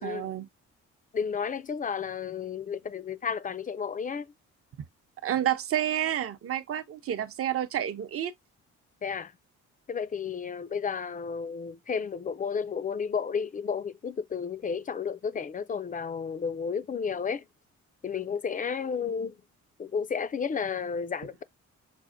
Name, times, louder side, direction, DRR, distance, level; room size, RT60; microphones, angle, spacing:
voice 1, 0.0-0.5 5.2-8.3, right 11 dB, 50° right, 0.7 m, -29 dB
voice 2, 1.1-4.3 9.0-9.3 9.9-17.4 18.0-19.3 19.8-21.4, left 6 dB, 30° left, 0.4 m, -32 dB
6.0 x 2.1 x 2.5 m
cardioid pair, 90°, 30 cm